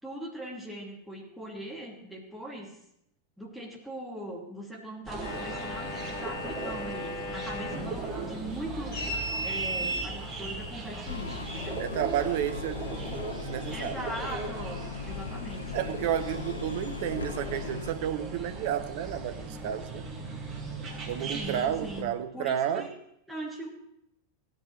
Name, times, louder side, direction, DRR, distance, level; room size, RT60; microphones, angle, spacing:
voice 1, 0.0-2.7 3.4-9.1 9.4-11.8 13.7-15.8 21.2-22.9 23.3-23.7, right 1 dB, ahead, 2.8 m, -40 dB
sound 1, 5.0-22.0, right 2 dB, 30° right, 2.1 m, -39 dB
sound 2, 5.2-11.6, equal, 50° left, 5.3 m, -36 dB
sound 3, 11.0-17.9, left 6 dB, 75° left, 0.6 m, -39 dB
voice 2, 11.8-14.0 15.7-20.1 21.1-22.9, right 10 dB, 50° right, 0.8 m, -31 dB
16.0 x 10.5 x 3.2 m
figure-of-eight pair, 90°, 0 cm